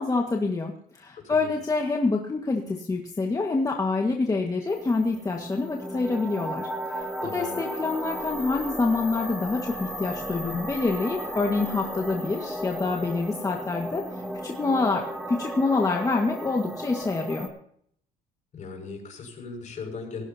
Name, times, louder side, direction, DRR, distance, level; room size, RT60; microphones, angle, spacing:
voice 1, 0.0-14.0 14.4-17.5, left 3 dB, 20° left, 1 dB, 1.7 m, -26 dB
voice 2, 1.1-1.5 7.2-7.6 18.5-20.2, left 4 dB, 45° left, 2 dB, 6.1 m, -38 dB
sound 1, 4.7-17.5, equal, 5° right, 2.9 m, -35 dB
18.5 x 16.5 x 2.9 m, 0.64 s
cardioid pair, 110°, 17 cm